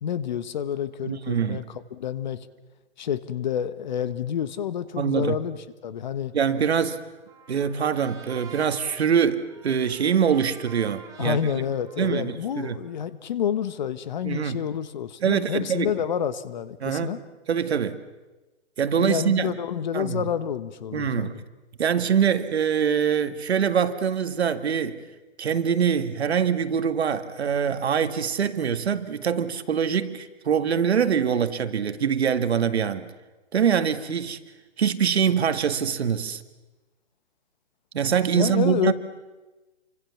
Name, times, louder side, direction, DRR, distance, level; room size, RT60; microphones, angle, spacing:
voice 1, 0.0-2.5 3.0-6.3 11.2-17.2 18.9-21.4 38.3-38.9, left 9 dB, 40° left, 1.3 m, -29 dB
voice 2, 1.0-1.6 5.0-5.4 6.3-7.0 7.5-11.4 12.0-12.8 14.2-14.6 15.2-15.9 16.8-17.1 17.5-18.0 18.8-19.5 19.9-20.2 20.9-21.4 21.8-25.0 25.4-33.1 33.5-34.4 34.8-36.4 37.9-38.9, right 7 dB, 65° right, 2.0 m, -24 dB
Trumpet, 6.8-13.0, right 5 dB, 10° right, 2.6 m, -48 dB
29.5 x 25.0 x 7.2 m
hypercardioid pair, 160°, 34 cm